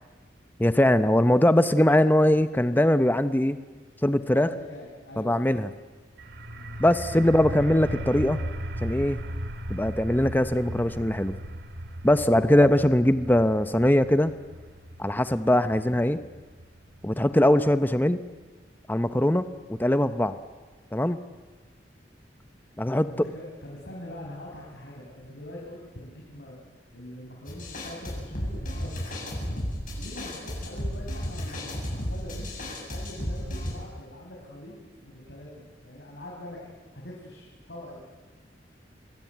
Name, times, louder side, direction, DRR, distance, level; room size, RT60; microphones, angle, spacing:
voice 1, 0.6-3.6 4.0-4.5 5.2-5.7 6.8-8.4 8.8-9.2 9.7-11.4 12.0-14.3 15.0-16.2 17.0-18.2 18.9-20.4 20.9-21.2 22.8-23.3, left 1 dB, 10° left, 11 dB, 0.8 m, -21 dB
voice 2, 4.3-5.5 6.5-6.8 12.2-12.6 23.0-26.6 26.9-29.2 30.0-34.8 35.0-38.1, left 1 dB, 75° left, -3 dB, 5.8 m, -43 dB
sound 1, 6.2-17.7, right 1 dB, 70° right, 1.9 m, -37 dB
sound 2, 27.5-33.7, equal, 50° left, 7.9 m, -33 dB
28.0 x 21.0 x 9.4 m, 1.3 s
head